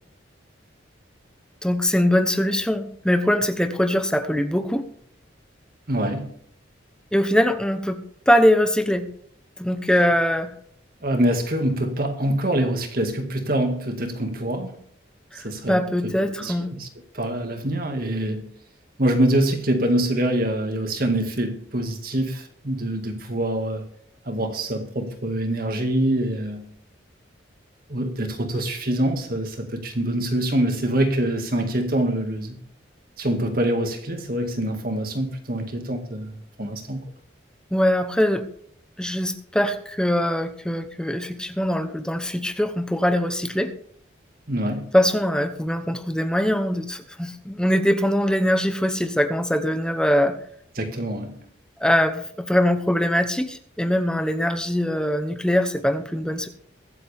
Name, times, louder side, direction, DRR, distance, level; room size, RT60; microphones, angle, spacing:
voice 1, 1.6-4.9 7.1-8.0 8.3-9.1 9.6-10.5 15.3-16.7 37.7-38.5 39.0-43.7 44.9-50.4 51.8-56.5, equal, 5° left, 0.9 m, -22 dB
voice 2, 5.9-6.3 11.0-14.7 15.4-16.9 17.1-18.5 19.0-23.8 24.3-26.7 27.9-32.6 33.2-37.0 44.5-44.9 50.8-51.4, right 1 dB, 50° right, 2.1 m, -25 dB
23.0 x 7.7 x 3.5 m
head